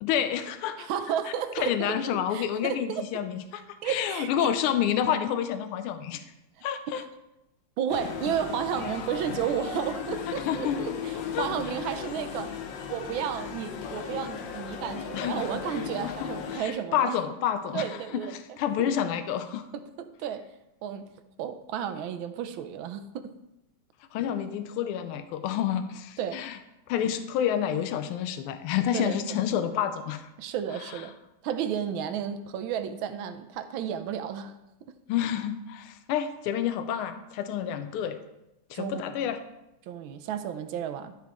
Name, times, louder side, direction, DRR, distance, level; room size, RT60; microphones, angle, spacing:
voice 1, 0.0-0.9 1.6-6.2 6.6-7.0 10.4-10.8 11.3-11.5 15.1-15.5 16.0-16.1 16.5-17.9 18.1-18.2 18.6-19.7 24.1-26.6 26.9-30.3 35.1-38.2 38.7-39.4, left 9 dB, 85° left, 10 dB, 1.5 m, -29 dB
voice 2, 0.8-3.0 3.8-4.5 6.9-7.0 7.8-12.6 12.9-17.2 17.7-18.9 19.7-20.5 20.8-21.1 21.4-23.4 26.2-26.4 28.9-29.2 30.4-31.2 31.4-34.5 34.9-35.0 38.7-39.3 39.9-41.2, right 8 dB, 75° right, 9 dB, 1.4 m, -33 dB
sound 1, 7.9-16.6, left 7 dB, 65° left, 1.3 m, -36 dB
13.5 x 4.7 x 3.5 m, 0.92 s
omnidirectional pair, 2.4 m